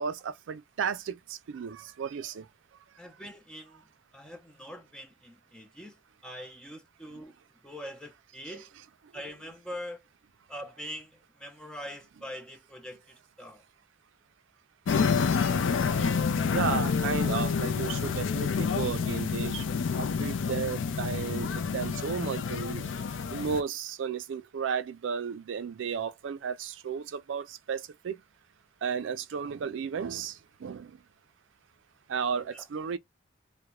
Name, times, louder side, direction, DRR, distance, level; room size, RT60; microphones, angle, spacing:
voice 1, 0.0-2.5 8.5-8.6 16.5-19.6 20.0-22.9 23.3-28.2 28.8-31.0 32.1-33.0, right 6 dB, 80° right, 0.4 m, -34 dB
voice 2, 3.0-3.8 4.1-7.4 7.6-8.7 9.1-10.0 10.5-13.6 32.4-32.6, equal, 5° left, 0.4 m, -43 dB
sound 1, 14.9-23.6, left 5 dB, 85° left, 0.4 m, -28 dB
2.3 x 2.1 x 2.8 m
head